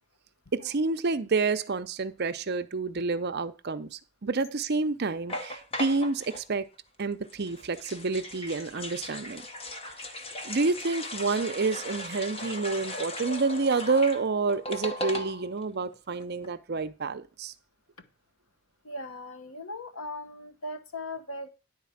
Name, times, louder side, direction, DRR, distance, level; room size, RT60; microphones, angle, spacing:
voice 1, 0.5-6.7 7.0-9.4 10.4-17.5, right 4 dB, 45° right, 0.6 m, -29 dB
sound 1, 5.3-6.4 7.3-15.6 15.9-16.0 16.2-16.5, left 1 dB, 25° left, 0.9 m, -38 dB
voice 2, 18.8-21.5, left 2 dB, 70° left, 1.2 m, -39 dB
10.5 x 4.2 x 7.1 m
head